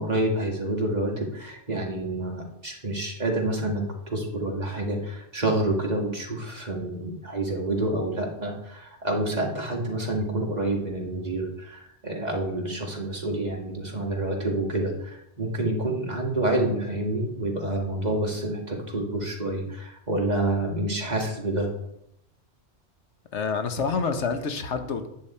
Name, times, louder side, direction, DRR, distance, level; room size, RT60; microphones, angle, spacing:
voice 1, 0.0-21.7, right 1 dB, 40° right, 0 dB, 2.0 m, -28 dB
voice 2, 23.3-25.1, left 5 dB, 80° left, 7 dB, 1.3 m, -27 dB
10.5 x 8.0 x 4.3 m, 0.80 s
omnidirectional pair, 1.2 m